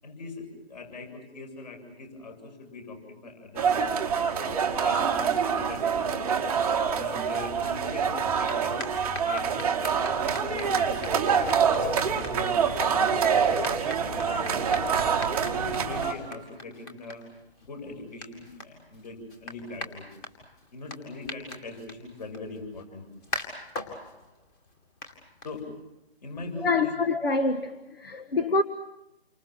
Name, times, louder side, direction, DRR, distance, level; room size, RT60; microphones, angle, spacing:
voice 1, 0.0-6.4 6.9-8.8 9.2-14.9 15.4-17.2 17.6-20.1 20.7-23.1 25.4-25.6 26.2-26.9, left 2 dB, 45° left, 7.6 m, -41 dB
sound 1, 3.6-16.1, right 6 dB, 5° right, 1.2 m, -26 dB
sound 2, 8.2-26.0, left 2 dB, 15° left, 2.2 m, -43 dB
voice 2, 26.6-28.6, left 3 dB, 65° left, 1.5 m, -26 dB
29.0 x 25.5 x 6.1 m
figure-of-eight pair, 155°, 31 cm